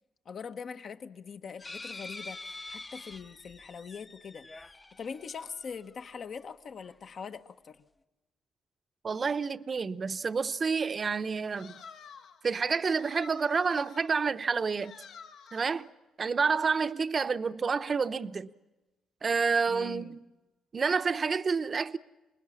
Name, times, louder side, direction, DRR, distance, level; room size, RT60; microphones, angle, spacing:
voice 1, 0.2-4.7 5.0-7.8 19.7-20.2, left 6 dB, 50° left, 1.3 m, -42 dB
sound 1, 1.6-6.2 6.8-6.9 7.2-7.3, left 2 dB, 20° left, 0.9 m, -46 dB
voice 2, 9.0-11.8 12.4-14.9 15.5-15.9 16.2-18.5 19.2-20.2 20.7-22.0, right 5 dB, 40° right, 0.9 m, -29 dB
sound 2, 11.6-12.4 13.0-14.2 14.8-15.9, left 6 dB, 75° left, 1.9 m, -50 dB
28.5 x 20.5 x 7.2 m
cardioid pair, 90°, 0 cm